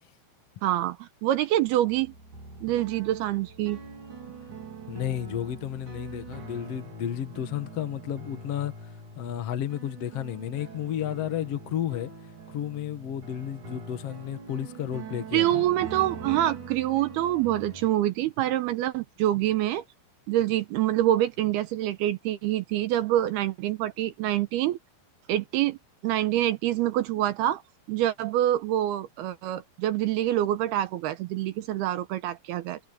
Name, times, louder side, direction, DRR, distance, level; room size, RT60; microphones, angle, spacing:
voice 1, 0.6-2.1 2.6-3.8 15.3-19.8 20.3-24.8 25.3-25.8 26.0-27.6 27.9-32.8, right 13 dB, 80° right, 2.5 m, -26 dB
sound 1, 1.9-17.9, right 4 dB, 45° right, 5.5 m, -43 dB
voice 2, 4.9-8.7 9.2-12.1 12.5-15.6, left 10 dB, 55° left, 1.7 m, -32 dB
omnidirectional pair, 5.2 m